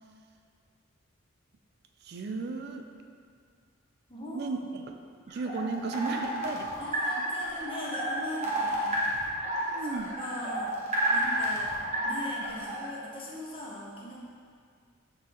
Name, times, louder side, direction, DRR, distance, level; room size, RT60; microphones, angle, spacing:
voice 1, 2.0-2.9 4.3-4.9 5.3-6.7 9.7-10.1, right 3 dB, 50° right, 5 dB, 0.4 m, -34 dB
voice 2, 4.1-4.6 6.1-9.0 9.8-10.8 11.1-11.7 12.0-14.2, left 1 dB, 25° left, -4 dB, 0.8 m, -40 dB
sound 1, 5.3-12.9, right 1 dB, 35° right, 0.9 m, -31 dB
8.7 x 3.7 x 2.9 m, 2.2 s
head